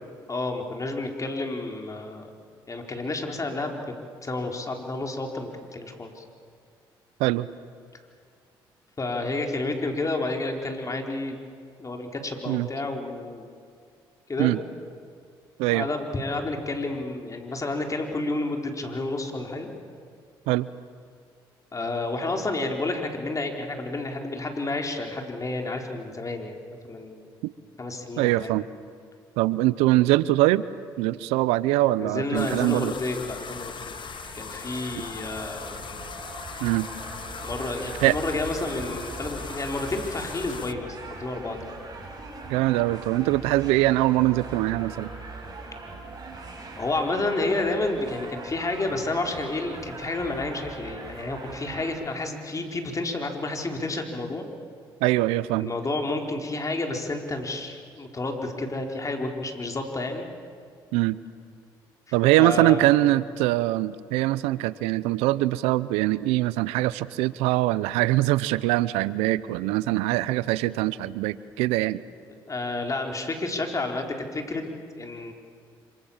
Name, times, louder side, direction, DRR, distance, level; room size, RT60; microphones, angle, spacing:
voice 1, 0.3-2.3 2.7-3.8 4.2-6.2 9.0-11.4 11.8-13.5 14.3-14.5 15.7-19.7 21.7-26.6 26.8-27.3 27.8-28.5 32.0-33.9 34.3-35.8 37.4-41.6 46.8-54.5 55.6-60.3 62.1-63.0 72.5-74.6 75.0-75.3, left 2 dB, 30° left, 3 dB, 4.4 m, -30 dB
voice 2, 28.2-28.7 29.4-30.6 31.0-32.9 36.6-36.9 38.0-38.2 42.5-45.1 55.0-55.7 60.9-61.2 62.1-72.0, right 17 dB, 85° right, 18 dB, 0.7 m, -23 dB
sound 1, 32.3-40.7, left 7 dB, 50° left, 1.1 m, -40 dB
sound 2, 32.8-51.9, right 3 dB, 40° right, 7.3 m, -41 dB
26.5 x 25.5 x 7.3 m, 2.2 s
supercardioid pair, 60°, 10 cm